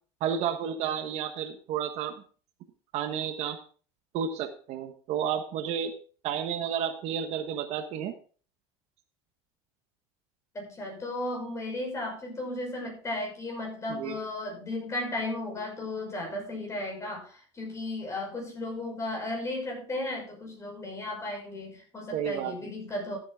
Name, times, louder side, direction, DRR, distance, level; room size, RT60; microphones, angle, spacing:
voice 1, 0.2-2.1 2.9-3.6 4.1-5.9 6.2-8.1 13.9-14.1 22.1-22.5, right 8 dB, 50° right, 7 dB, 1.3 m, -31 dB
voice 2, 10.5-23.2, left 1 dB, 20° left, 1 dB, 5.8 m, -35 dB
13.5 x 8.3 x 3.7 m, 0.41 s
supercardioid pair, 135°, 14 cm